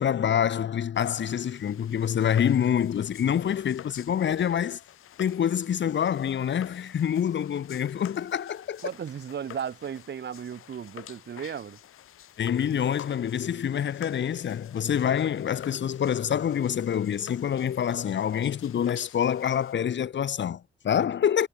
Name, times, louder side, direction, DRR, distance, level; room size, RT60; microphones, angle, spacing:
voice 1, 0.0-4.8 5.2-8.8 12.4-21.5, left 9 dB, 60° left, 1.0 m, -26 dB
sound 1, 0.9-19.7, left 11 dB, 90° left, 6.2 m, -49 dB
voice 2, 8.8-11.8, right 8 dB, 55° right, 1.1 m, -35 dB
cardioid pair, 85°, 21 cm